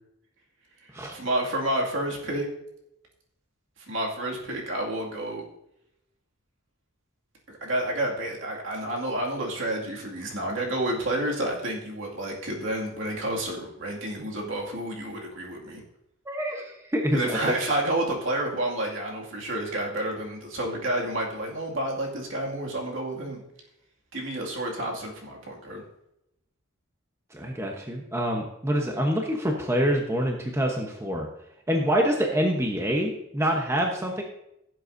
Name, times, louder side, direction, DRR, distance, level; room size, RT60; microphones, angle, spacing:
voice 1, 0.8-2.5 3.8-5.4 7.5-15.8 17.1-23.4 24.1-25.8, right 1 dB, 65° right, -1 dB, 2.3 m, -30 dB
voice 2, 16.3-17.4 27.3-31.3 31.7-34.2, equal, 15° right, 1 dB, 1.0 m, -26 dB
16.0 x 7.8 x 2.7 m, 0.81 s
head